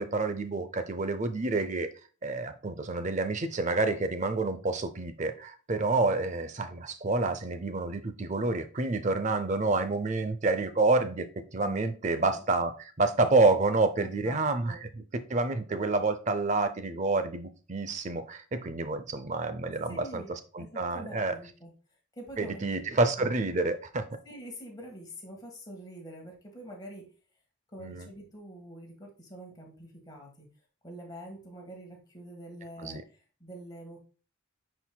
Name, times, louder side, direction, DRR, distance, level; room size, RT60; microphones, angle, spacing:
voice 1, 0.0-1.9 2.2-11.3 11.5-14.8 15.1-21.3 22.4-24.1 27.8-28.1 32.8-33.0, right 3 dB, 35° right, 0.5 m, -28 dB
voice 2, 11.6-12.4 14.0-14.4 14.7-14.8 19.9-21.7 22.1-23.3 24.2-27.0 27.7-30.5 30.8-34.0, equal, 20° left, 1.6 m, -46 dB
9.5 x 4.5 x 2.2 m
head